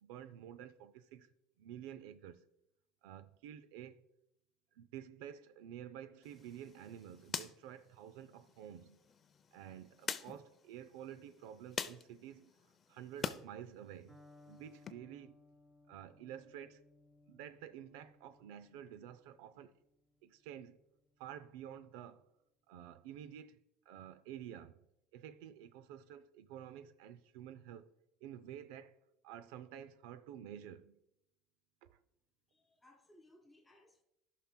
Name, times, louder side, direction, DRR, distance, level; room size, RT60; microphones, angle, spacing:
voice 1, 0.0-1.3 1.6-2.4 3.0-4.0 4.8-9.0 9.5-12.5 12.9-14.2 14.5-15.4 15.9-16.8 17.3-19.8 20.2-20.8 21.2-22.3 22.7-23.6 23.9-24.8 25.1-27.9 28.2-29.0 29.2-31.0 31.8-32.0, right 10 dB, 85° right, 0.4 m, -50 dB
sound 1, 6.2-13.4 13.8-14.9, left 6 dB, 30° left, 0.5 m, -46 dB
Electric guitar, 14.1-21.9, left 2 dB, 20° right, 2.9 m, -65 dB
voice 2, 32.5-34.0, left 1 dB, 10° left, 2.4 m, -64 dB
14.0 x 5.8 x 2.2 m
cardioid pair, 130°, 0 cm